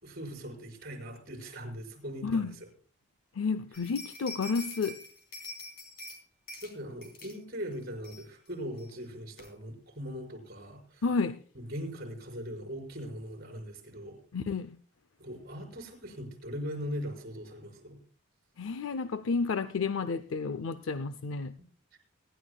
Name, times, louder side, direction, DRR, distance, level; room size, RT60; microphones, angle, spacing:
voice 1, 0.0-2.5 6.6-11.0 11.5-14.2 15.2-18.0 21.9-22.0, equal, 45° right, 1 dB, 5.3 m, -40 dB
voice 2, 2.2-2.6 3.4-5.0 11.0-11.4 14.3-14.8 18.6-21.5, left 4 dB, 70° left, 13 dB, 0.5 m, -31 dB
sound 1, 3.7-6.2 6.5-6.7 7.0-7.4 7.7-7.8 8.0-8.5 8.8-8.9 9.4-9.5, left 2 dB, 45° left, 3.4 m, -45 dB
25.0 x 11.5 x 2.3 m, 0.41 s
head